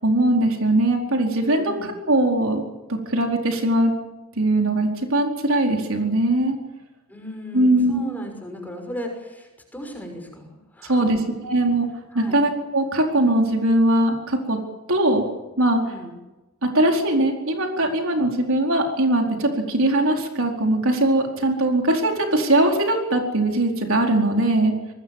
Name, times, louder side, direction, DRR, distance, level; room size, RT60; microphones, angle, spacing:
voice 1, 0.0-2.6 2.9-3.9 4.3-6.6 7.5-8.1 10.8-11.2 11.4-14.6 14.9-15.3 15.6-15.9 16.6-24.7, right 1 dB, 65° right, 2 dB, 4.5 m, -21 dB
voice 2, 1.6-1.9 7.1-10.5 10.7-11.2 12.1-12.4 15.8-16.1, equal, 10° left, 3 dB, 6.0 m, -36 dB
26.5 x 20.5 x 7.4 m, 1.1 s
head